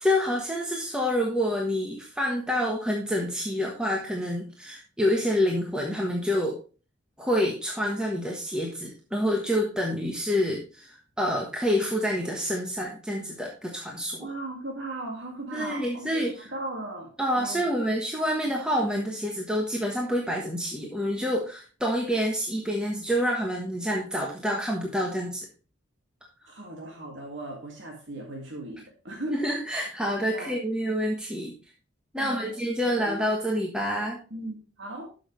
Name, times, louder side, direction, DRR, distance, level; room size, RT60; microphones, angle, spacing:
voice 1, 0.0-6.6 7.2-14.3 15.5-16.5 17.2-25.4 29.3-31.5 32.1-34.2, equal, 5° right, -1 dB, 1.3 m, -27 dB
voice 2, 14.2-17.1 17.4-17.7 26.5-29.4 30.3-30.5 32.2-32.5 32.8-33.2 34.3-35.1, right 2 dB, 65° right, 0 dB, 2.1 m, -37 dB
12.0 x 6.3 x 3.2 m, 0.35 s
head